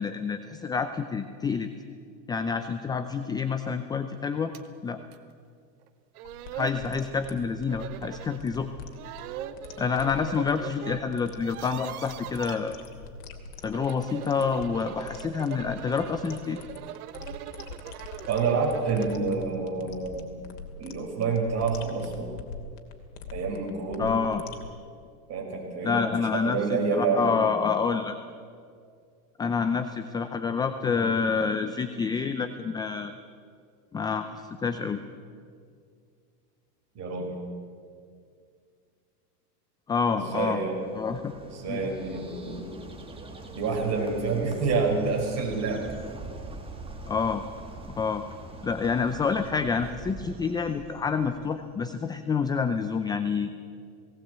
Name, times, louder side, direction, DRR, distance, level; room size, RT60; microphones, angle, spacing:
voice 1, 0.0-1.7 2.3-4.5 4.8-5.0 6.5-8.7 9.8-12.8 13.6-16.6 24.0-24.4 25.8-28.2 29.4-33.1 33.9-35.0 39.9-40.6 40.9-41.3 41.7-42.0 47.1-47.4 48.0-48.2 48.6-53.5, left 5 dB, 10° left, 9 dB, 0.4 m, -28 dB
sound 1, 4.5-4.7 5.1-5.2 5.9-6.0 6.2-6.8 7.7-8.4 8.9-11.0 11.3-12.6 13.6-19.3, right 11 dB, 70° right, 1.4 m, -41 dB
sound 2, 6.2-24.7, left 5 dB, 75° left, 2.7 m, -44 dB
voice 2, 18.3-20.3 20.8-22.4 23.3-24.1 25.3-27.4 37.0-37.3 40.1-40.8 41.4-42.8 43.5-45.9, right 4 dB, 35° right, 1 dB, 5.3 m, -28 dB
Bird, 40.4-51.8, right 2 dB, 10° right, 2.1 m, -43 dB
19.0 x 18.0 x 8.1 m, 2.2 s
supercardioid pair, 135°, 46 cm